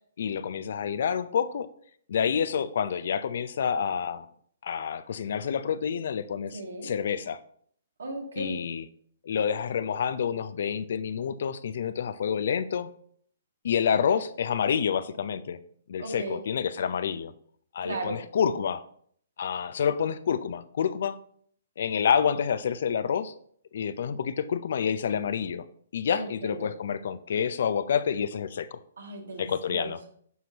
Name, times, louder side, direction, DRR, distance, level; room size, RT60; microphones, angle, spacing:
voice 1, 0.2-1.7 2.1-4.3 4.6-7.4 8.4-8.8 9.2-12.9 13.6-15.6 15.9-17.3 17.7-18.8 19.4-21.2 21.8-23.3 23.7-25.6 25.9-28.8 29.4-30.0, left 7 dB, 65° left, 14 dB, 0.5 m, -28 dB
voice 2, 6.5-6.9 8.0-8.6 16.0-16.4 17.8-18.2 26.1-26.7 29.0-30.1, right 2 dB, 80° right, 2 dB, 2.0 m, -36 dB
9.4 x 5.9 x 2.9 m, 0.62 s
hypercardioid pair, 135°, 0 cm